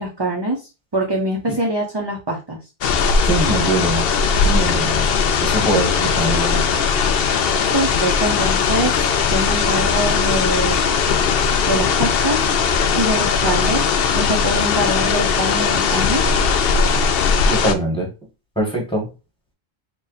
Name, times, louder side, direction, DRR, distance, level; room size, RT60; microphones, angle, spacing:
voice 1, 0.0-2.6 7.7-10.8 11.7-12.5 12.9-16.3, right 1 dB, 30° right, -1 dB, 0.7 m, -24 dB
sound 1, 2.8-17.7, left 6 dB, 70° left, 0.8 m, -19 dB
voice 2, 3.2-4.1 4.4-5.1 5.4-6.9 17.5-18.1 18.5-19.1, right 2 dB, 5° left, -2 dB, 1.5 m, -22 dB
3.8 x 2.3 x 4.1 m, 0.28 s
omnidirectional pair, 1.1 m